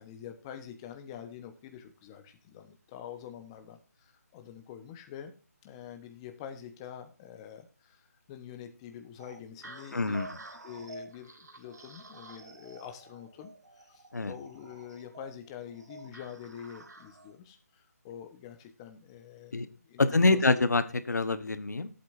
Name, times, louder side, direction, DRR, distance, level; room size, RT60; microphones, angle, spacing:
voice 1, 0.0-5.3 5.6-20.6, left 9 dB, 20° left, 6 dB, 1.2 m, -46 dB
sound 1, 9.2-17.4, right 2 dB, 85° right, 2.6 m, -49 dB
voice 2, 9.9-10.3 14.1-14.3 19.5-19.7 20.0-21.9, left 3 dB, 85° left, 12 dB, 1.4 m, -26 dB
14.5 x 8.4 x 2.7 m, 0.33 s
figure-of-eight pair, 160°, 9 cm